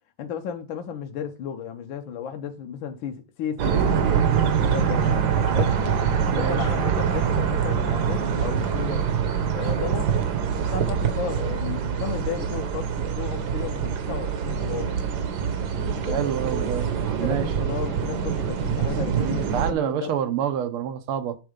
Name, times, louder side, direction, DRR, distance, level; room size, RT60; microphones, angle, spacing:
voice 1, 0.2-4.1 4.6-5.8 6.2-9.1 9.5-10.1 10.5-14.9 15.8-16.3 17.2-20.1, left 8 dB, 70° left, 1.4 m, -34 dB
sound 1, 3.6-19.7, right 7 dB, 60° right, 1.2 m, -24 dB
voice 2, 16.1-17.5 19.5-21.4, right 9 dB, 85° right, 1.6 m, -27 dB
7.9 x 3.7 x 5.0 m
omnidirectional pair, 2.3 m